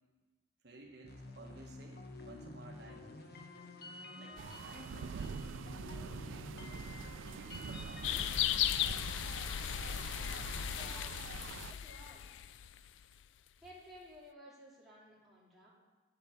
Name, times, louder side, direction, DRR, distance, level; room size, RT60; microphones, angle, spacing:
voice 1, 0.6-3.1 4.1-5.4 6.1-6.6 7.3-8.2, right 2 dB, 55° right, 0 dB, 1.1 m, -55 dB
sound 1, 1.0-8.4, left 2 dB, 55° left, 1.0 m, -49 dB
sound 2, 4.4-11.7, right 6 dB, 85° right, 0.4 m, -45 dB
sound 3, 8.0-13.0, left 11 dB, 75° left, 0.3 m, -36 dB
voice 2, 10.1-11.4 11.7-12.3 13.6-15.7, equal, ahead, -8 dB, 2.7 m, -56 dB
8.4 x 7.6 x 6.9 m, 1.3 s
head